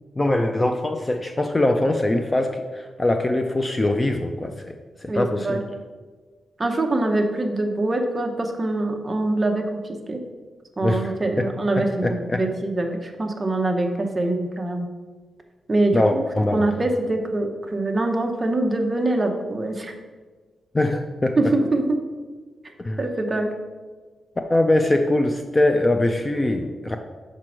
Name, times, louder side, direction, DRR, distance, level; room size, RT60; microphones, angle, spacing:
voice 1, 0.2-4.7 5.0-5.6 10.8-11.5 11.8-12.4 15.9-16.7 20.7-21.4 22.8-23.0 24.5-27.0, left 1 dB, 20° left, 5 dB, 0.4 m, -22 dB
voice 2, 5.1-5.6 6.6-9.8 10.1-10.2 10.8-14.9 15.7-16.3 16.5-19.9 21.4-21.8 23.0-23.5, right 2 dB, 20° right, 3 dB, 0.7 m, -24 dB
5.1 x 4.5 x 6.1 m, 1.4 s
wide cardioid pair, 160°, 0 cm